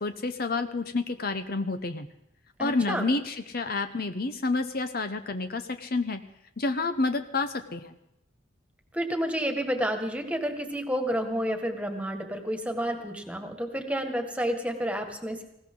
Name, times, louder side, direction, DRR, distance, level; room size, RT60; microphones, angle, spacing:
voice 1, 0.0-2.1 2.6-6.2 6.6-7.9, left 3 dB, 50° left, 9 dB, 0.9 m, -29 dB
voice 2, 2.6-3.1 8.9-15.4, equal, 5° right, 5 dB, 1.9 m, -30 dB
20.0 x 17.0 x 3.9 m, 0.84 s
head